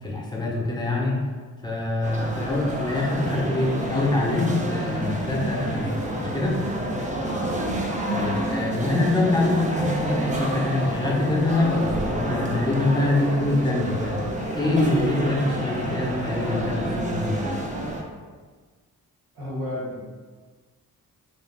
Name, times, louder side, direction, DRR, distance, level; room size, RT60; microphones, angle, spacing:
voice 1, 0.0-1.2 1.6-6.6 8.1-14.2 14.5-17.5, left 2 dB, 10° left, -3 dB, 0.7 m, -25 dB
sound 1, 2.0-18.0, right 1 dB, 20° right, 0.5 m, -28 dB
voice 2, 7.3-7.7 19.3-20.0, left 1 dB, 85° right, -7 dB, 0.9 m, -32 dB
2.4 x 2.3 x 3.3 m, 1.4 s
cardioid pair, 70°, 36 cm